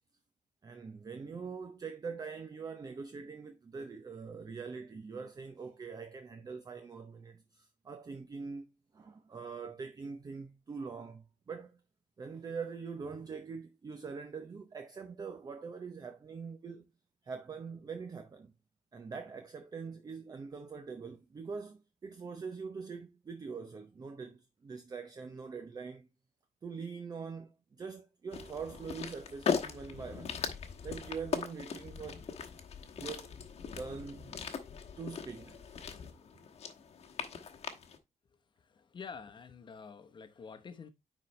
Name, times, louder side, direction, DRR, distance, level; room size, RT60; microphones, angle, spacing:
voice 1, 0.6-11.8 12.2-16.9 17.2-18.5 18.9-26.1 26.6-30.3 30.8-32.2 33.0-33.3 33.8-34.3 35.0-35.6, right 5 dB, 30° right, 0.7 m, -43 dB
sound 1, 28.3-38.0, left 6 dB, 55° left, 1.1 m, -39 dB
voice 2, 38.6-40.9, left 5 dB, 35° left, 1.0 m, -48 dB
9.8 x 4.1 x 3.2 m
cardioid pair, 140°, 13 cm